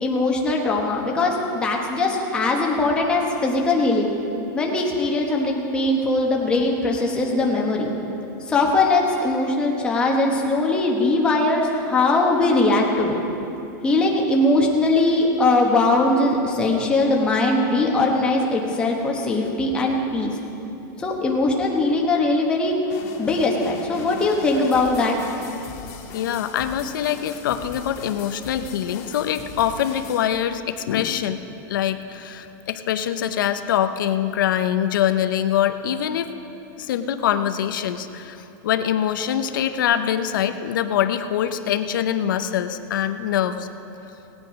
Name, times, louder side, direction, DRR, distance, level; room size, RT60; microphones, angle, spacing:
voice 1, 0.0-4.1 4.5-7.9 8.4-13.2 13.8-20.3 21.0-22.8 23.2-25.1, left 2 dB, 10° left, -1 dB, 1.1 m, -20 dB
sound 1, 22.9-30.3, left 6 dB, 40° left, 1.7 m, -39 dB
voice 2, 26.1-31.4 31.7-36.3 36.8-38.4 38.6-43.7, left 10 dB, 90° left, 9 dB, 0.8 m, -24 dB
18.5 x 9.0 x 5.2 m, 2.9 s
supercardioid pair, 180°, 11 cm